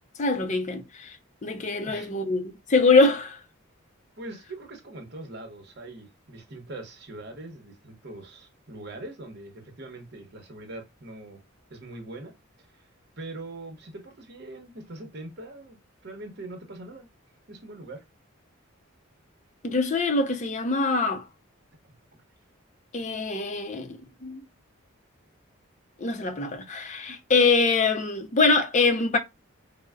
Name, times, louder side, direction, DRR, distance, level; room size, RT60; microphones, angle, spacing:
voice 1, 0.2-1.2 1.4-3.4 19.6-21.3 22.9-24.4 26.0-29.2, left 3 dB, 35° left, 0.5 m, -24 dB
voice 2, 4.2-11.4 11.7-12.3 12.7-12.9 13.2-17.1 17.5-18.0 21.8-21.9, right 2 dB, 55° right, 0.9 m, -42 dB
4.5 x 2.0 x 2.2 m
head